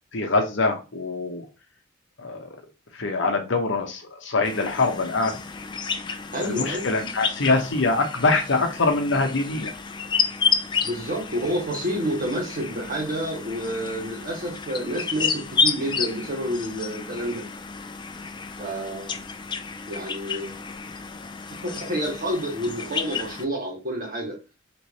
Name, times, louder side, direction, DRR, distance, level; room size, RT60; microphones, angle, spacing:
voice 1, 0.1-1.4 2.2-2.6 2.9-5.4 6.4-9.7, left 3 dB, 60° left, 0.8 m, -24 dB
sound 1, 4.4-23.5, left 5 dB, 25° left, 0.3 m, -31 dB
voice 2, 6.3-6.9 10.8-17.5 18.6-19.3 19.9-20.7 21.6-24.4, equal, 45° right, 1.6 m, -29 dB
3.3 x 3.0 x 4.1 m
head